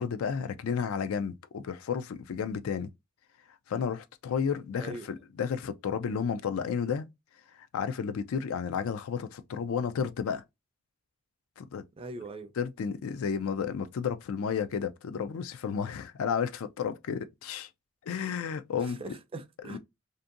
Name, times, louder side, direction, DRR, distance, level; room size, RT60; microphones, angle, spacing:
voice 1, 0.0-2.9 3.7-7.1 7.6-10.4 11.6-11.8 12.6-17.7 18.1-19.1 19.7-19.8, left 6 dB, 85° left, 0.4 m, -32 dB
voice 2, 4.7-5.1 12.0-12.5 18.8-19.8, right 2 dB, 25° right, 0.4 m, -41 dB
2.7 x 2.5 x 2.4 m
head